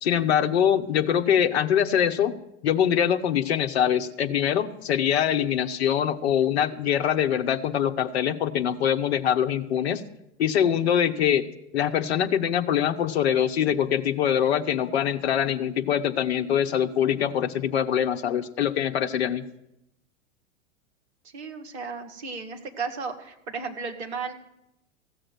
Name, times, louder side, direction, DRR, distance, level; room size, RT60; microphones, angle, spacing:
voice 1, 0.0-2.3 2.6-10.0 10.4-11.5 11.7-19.4, left 9 dB, 55° left, 7 dB, 1.0 m, -23 dB
voice 2, 21.3-24.3, right 5 dB, 55° right, 5 dB, 1.7 m, -34 dB
15.0 x 6.5 x 7.7 m, 0.84 s
figure-of-eight pair, 95°, 39 cm